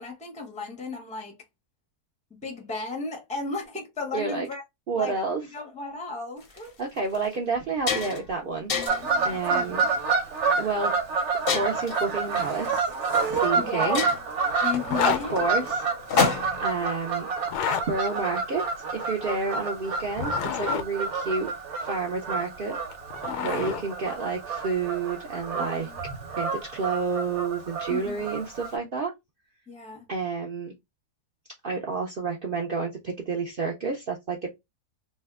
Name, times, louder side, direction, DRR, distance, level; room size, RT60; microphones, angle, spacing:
voice 1, 0.0-1.4 2.4-4.6 5.0-5.2 5.5-6.7 9.0-9.8 13.5-14.0 14.6-15.4 23.2-23.8 25.6-26.0 27.9-28.3 29.7-30.1, left 4 dB, 10° left, 0.3 m, -35 dB
voice 2, 4.1-4.5 4.9-5.4 6.8-8.7 9.2-9.8 10.6-10.9 11.5-12.9 13.3-14.0 15.0-15.9 16.6-17.3 17.9-21.5 21.7-22.8 23.4-25.9 26.3-29.1 30.1-30.7 31.6-34.5, right 4 dB, 70° right, 0.5 m, -29 dB
sound 1, 6.4-6.6 7.1-7.3 7.6-8.3 8.7-9.1 9.8-10.1 11.5-12.0 13.1-13.2 13.5-13.6 13.9-16.7, left 6 dB, 55° left, 0.6 m, -28 dB
Fowl / Bird vocalization bird call bird song, 8.9-28.7, right 4 dB, 55° right, 0.9 m, -29 dB
Zipper (clothing), 14.8-15.2 17.4-17.8 20.0-20.8 22.7-23.8, left 8 dB, 90° left, 1.1 m, -29 dB
2.7 x 2.2 x 3.4 m
omnidirectional pair, 1.7 m